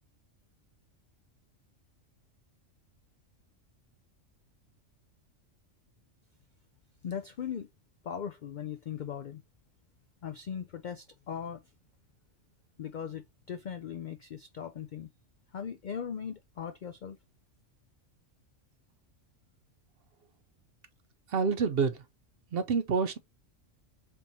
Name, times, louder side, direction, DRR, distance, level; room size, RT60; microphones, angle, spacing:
voice 1, 7.0-7.7 8.0-9.4 10.2-11.7 12.8-15.1 15.5-17.2, left 8 dB, 75° left, 0.4 m, -39 dB
voice 2, 21.3-22.0 22.5-23.2, right 5 dB, 60° right, 0.7 m, -27 dB
4.3 x 3.5 x 2.7 m
omnidirectional pair, 1.3 m